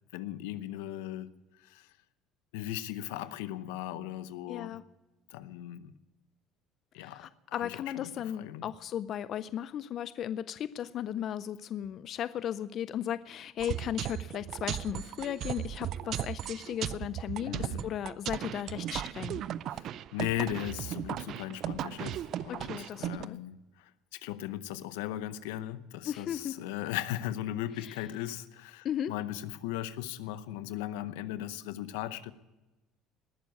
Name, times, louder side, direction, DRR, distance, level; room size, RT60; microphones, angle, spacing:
voice 1, 0.1-1.3 1.6-1.9 2.5-4.8 5.3-5.9 6.9-8.7 17.4-17.9 19.7-32.3, left 13 dB, 90° left, 0.8 m, -38 dB
voice 2, 4.5-4.8 7.0-19.4 22.5-23.4 26.1-26.6 27.8-28.0 28.8-29.1, left 10 dB, 55° left, 0.4 m, -36 dB
sound 1, 13.6-23.3, right 11 dB, 60° right, 0.4 m, -37 dB
19.5 x 7.0 x 9.4 m
supercardioid pair, 90°, 0 cm